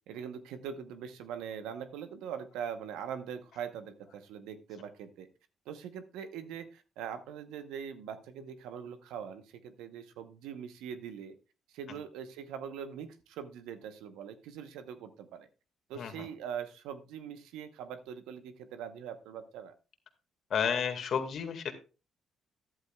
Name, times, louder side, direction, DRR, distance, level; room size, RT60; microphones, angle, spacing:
voice 1, 0.1-5.3 5.7-11.3 11.7-15.5 15.9-19.7, right 8 dB, 90° right, 9 dB, 0.9 m, -42 dB
voice 2, 20.5-21.7, left 7 dB, 65° left, 8 dB, 1.8 m, -32 dB
12.5 x 11.0 x 2.3 m, 0.32 s
supercardioid pair, 70°, 0 cm